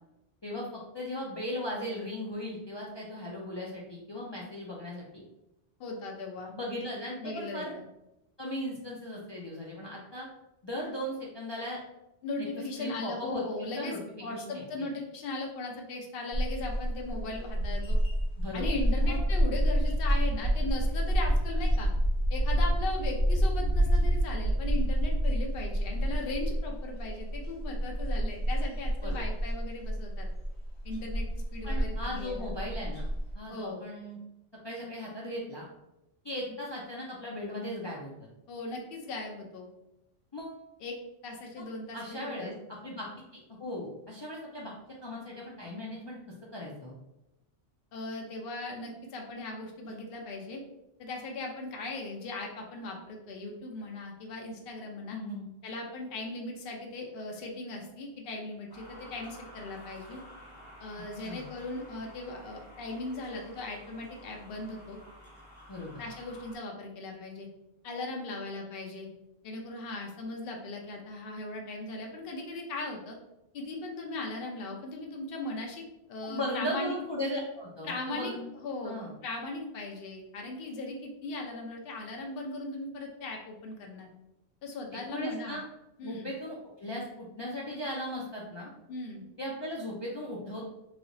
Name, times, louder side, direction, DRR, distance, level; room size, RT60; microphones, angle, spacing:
voice 1, 0.4-5.2 6.6-7.8 8.4-10.3 10.6-11.8 12.8-14.9 18.4-19.2 29.0-29.2 31.6-33.0 33.3-34.2 34.6-35.7 36.2-38.2 40.3-40.6 41.6-41.7 41.9-42.5 42.8-43.1 43.3-44.7 45.0-46.2 46.5-47.0 49.8-49.9 55.1-55.5 61.2-61.4 65.7-66.0 76.2-78.4 78.8-79.1 84.9-85.6 86.0-88.7 89.4-90.7, left 1 dB, 40° left, -4 dB, 0.4 m, -37 dB
voice 2, 5.8-6.5 7.2-7.7 12.2-13.9 14.2-18.0 18.5-21.9 22.3-30.3 30.8-31.3 31.5-32.5 33.5-33.8 38.5-39.7 40.8-40.9 41.2-42.5 47.9-50.6 51.0-55.2 55.6-60.2 60.8-65.0 66.0-67.5 67.8-69.1 69.4-73.2 73.5-76.9 77.8-78.3 78.6-84.1 84.6-85.6 86.0-86.3 88.9-89.2, left 2 dB, 65° left, 1 dB, 0.8 m, -38 dB
sound 1, 16.3-33.3, equal, 90° left, 1.4 m, -28 dB
sound 2, 58.7-66.5, equal, 25° left, 0.9 m, -51 dB
3.1 x 2.8 x 2.6 m, 0.91 s
omnidirectional pair, 1.1 m